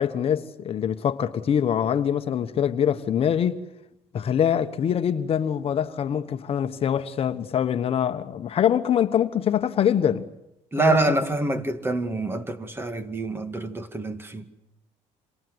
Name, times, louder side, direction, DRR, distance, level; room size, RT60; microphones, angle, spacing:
voice 1, 0.0-3.6 4.1-10.2 10.8-11.2, left 9 dB, 45° left, 1.3 m, -24 dB
voice 2, 10.7-14.5, right 2 dB, 15° right, 2.2 m, -26 dB
27.5 x 26.5 x 8.1 m
cardioid pair, 105°, 13 cm